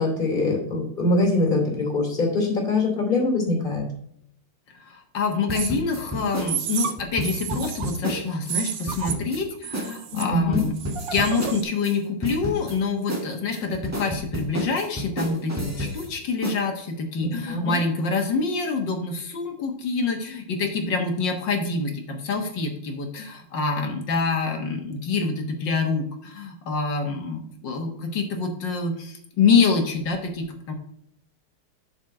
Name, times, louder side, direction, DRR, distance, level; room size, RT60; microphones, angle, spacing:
voice 1, 0.0-3.8 10.1-10.6 17.2-17.8, left 2 dB, 20° left, 0 dB, 3.2 m, -23 dB
voice 2, 4.7-10.7 11.1-30.7, left 4 dB, 60° left, 4 dB, 1.8 m, -26 dB
sound 1, 5.5-8.6 8.9-9.4 9.7-9.9 10.2-11.9 12.2-12.8 13.1-16.1 16.4-16.6, equal, 10° right, 1.1 m, -31 dB
sound 2, 5.5-5.7 6.4-6.9 7.2-8.0 8.5-9.4 9.6-10.2 10.8-11.6, right 9 dB, 60° right, 0.9 m, -31 dB
7.4 x 5.2 x 5.8 m, 0.71 s
omnidirectional pair, 2.4 m